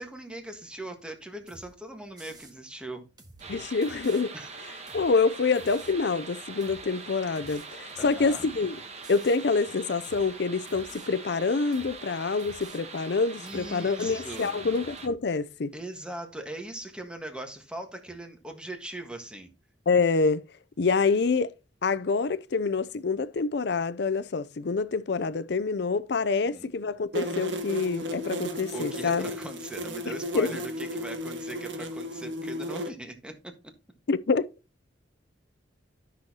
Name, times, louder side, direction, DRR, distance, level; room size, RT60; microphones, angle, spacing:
voice 1, 0.0-3.0 4.3-4.5 8.0-8.4 13.4-14.6 15.7-19.5 26.3-26.7 28.7-33.7, right 1 dB, 5° right, 1.5 m, -40 dB
sound 1, 1.5-1.7 2.2-2.6 3.2-4.2 4.9-5.1 5.5-6.0 6.6-6.9 7.4-8.6 9.0-9.4 10.0-10.3 10.7-11.1 11.7-12.0 12.4-12.8 13.5-13.7 14.0-15.2, right 2 dB, 20° right, 1.6 m, -51 dB
sound 2, 3.4-15.1, right 4 dB, 35° right, 1.2 m, -43 dB
voice 2, 3.5-4.3 4.9-8.8 9.1-15.7 19.9-20.4 20.8-21.5 21.8-29.3 30.3-30.5 34.1-34.5, left 4 dB, 65° left, 0.5 m, -26 dB
sound 3, 27.1-32.9, equal, 85° right, 1.4 m, -34 dB
12.5 x 6.3 x 2.9 m
head